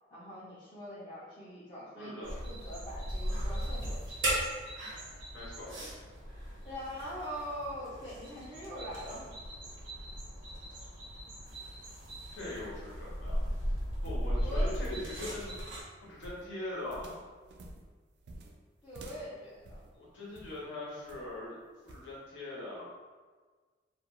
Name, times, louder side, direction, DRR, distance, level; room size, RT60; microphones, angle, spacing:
voice 1, 0.1-4.2 6.6-9.3 14.4-14.7 18.8-19.8, equal, 25° left, -11 dB, 0.6 m, -43 dB
voice 2, 1.9-2.3 5.3-5.8 12.3-13.5 14.0-17.2 19.9-21.6 21.8-22.9, left 1 dB, 75° left, -6 dB, 0.9 m, -42 dB
sound 1, 2.2-15.8, equal, 80° right, 0.9 m, -37 dB
sound 2, 10.9-20.6 21.1-21.4 21.9-22.1, right 1 dB, 60° right, 0.3 m, -51 dB
2.4 x 2.2 x 2.9 m, 1.4 s
head